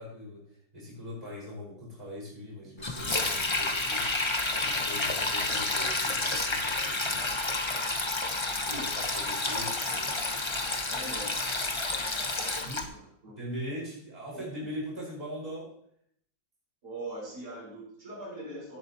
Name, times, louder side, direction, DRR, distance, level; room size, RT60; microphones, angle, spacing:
voice 1, 0.0-4.2 4.6-7.4 8.6-10.2 12.6-12.8 13.3-15.7, equal, 20° right, -6 dB, 5.0 m, -41 dB
Sink (filling or washing), 2.8-12.8, left 2 dB, 25° left, 0.7 m, -30 dB
voice 2, 10.9-11.5 12.4-13.4 14.3-14.4 16.8-18.8, right 1 dB, 60° right, -6 dB, 5.2 m, -42 dB
17.0 x 8.4 x 2.9 m, 0.66 s
omnidirectional pair, 2.0 m